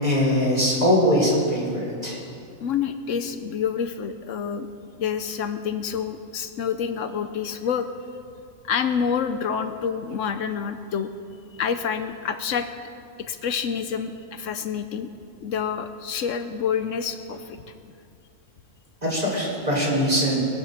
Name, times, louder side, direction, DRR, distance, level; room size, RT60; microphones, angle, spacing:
voice 1, 0.0-2.2 19.0-20.4, equal, 30° right, -4 dB, 4.1 m, -22 dB
voice 2, 2.6-4.7 5.0-7.9 8.6-11.1 11.6-12.7 13.2-15.1 15.4-17.6, left 7 dB, 75° left, 9 dB, 1.0 m, -28 dB
21.5 x 7.6 x 6.6 m, 2.4 s
omnidirectional pair, 1.4 m